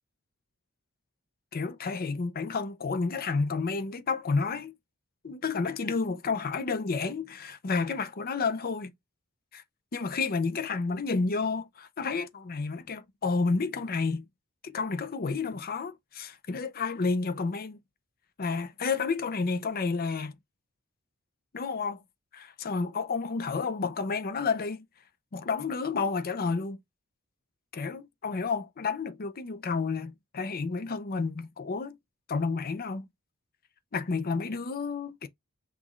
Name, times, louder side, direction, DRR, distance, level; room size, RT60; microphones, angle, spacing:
voice 1, 1.5-4.7 5.2-8.9 9.5-9.6 9.9-14.3 14.6-17.8 18.4-20.4 21.5-22.0 22.3-24.9 25.3-26.8 27.7-32.0 32.3-33.1 33.9-35.3, left 4 dB, 45° left, 0.6 m, -30 dB
5.8 x 2.4 x 3.1 m
head